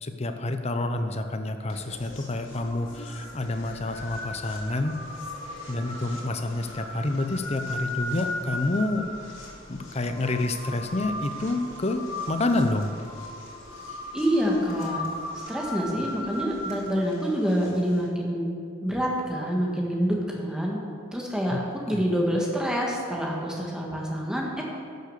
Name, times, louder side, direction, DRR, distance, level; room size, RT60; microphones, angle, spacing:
voice 1, 0.0-5.0 5.7-9.0 9.7-12.9 21.5-21.6 21.9-22.0, left 2 dB, 30° left, 7 dB, 0.7 m, -28 dB
sound 1, 1.7-18.1, left 1 dB, 70° left, 2.8 m, -38 dB
voice 2, 14.1-15.1 15.5-18.6 18.8-20.8 21.1-21.6 21.9-24.6, equal, 5° right, -2 dB, 1.7 m, -27 dB
12.0 x 6.7 x 6.6 m, 2.2 s
head